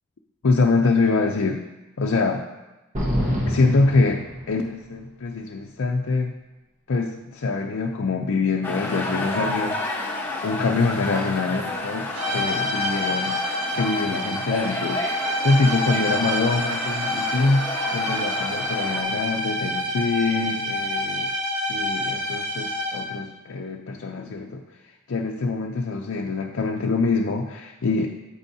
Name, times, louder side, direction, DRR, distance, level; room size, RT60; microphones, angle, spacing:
voice 1, 0.4-1.6 2.0-2.5 3.5-6.3 6.9-9.8 10.4-13.4 13.7-15.0 15.4-21.3 21.7-24.6 25.1-28.1, left 3 dB, 60° left, 1 dB, 0.5 m, -24 dB
sound 1, 2.9-4.9, equal, 35° right, 1.3 m, -26 dB
sound 2, 8.6-19.0, left 2 dB, 10° left, 1.1 m, -31 dB
sound 3, 12.1-23.3, equal, 80° right, 1.4 m, -27 dB
9.0 x 8.0 x 2.8 m, 1.1 s
head